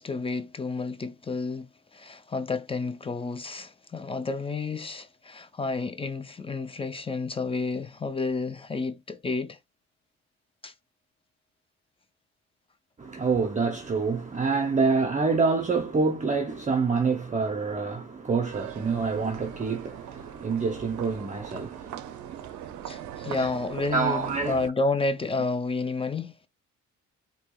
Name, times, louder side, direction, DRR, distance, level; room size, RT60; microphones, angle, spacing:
voice 1, 0.0-9.6 10.6-10.7 22.8-26.5, left 3 dB, 20° left, 0.5 m, -30 dB
voice 2, 13.0-23.5 23.9-24.5, right 4 dB, 25° right, 0.7 m, -27 dB
sound 1, 18.5-24.7, right 12 dB, 70° right, 0.5 m, -41 dB
4.4 x 2.8 x 2.3 m
cardioid pair, 90°, 30 cm